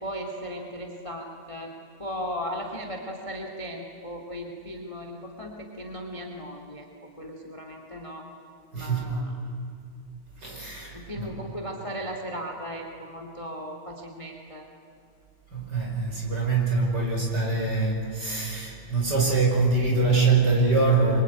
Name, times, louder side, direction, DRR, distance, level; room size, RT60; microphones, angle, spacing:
voice 1, 0.0-1.7 2.0-6.9 7.2-8.3 8.7-9.4 10.9-14.7, equal, 10° left, 3 dB, 2.2 m, -36 dB
voice 2, 8.7-9.2 10.4-11.4 15.5-21.2, right 3 dB, 30° right, 0 dB, 5.8 m, -24 dB
25.0 x 24.5 x 9.5 m, 2.7 s
omnidirectional pair, 3.5 m